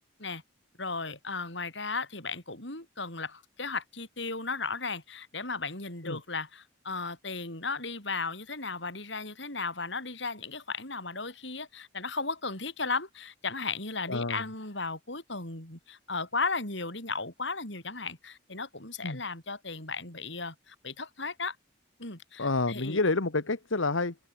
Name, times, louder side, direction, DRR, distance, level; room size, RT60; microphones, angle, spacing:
voice 1, 0.8-21.6 22.0-23.0, left 4 dB, 65° left, 7.5 m, -35 dB
voice 2, 14.1-14.4 19.0-19.2 22.4-24.2, left 3 dB, 85° left, 1.6 m, -28 dB
open air
head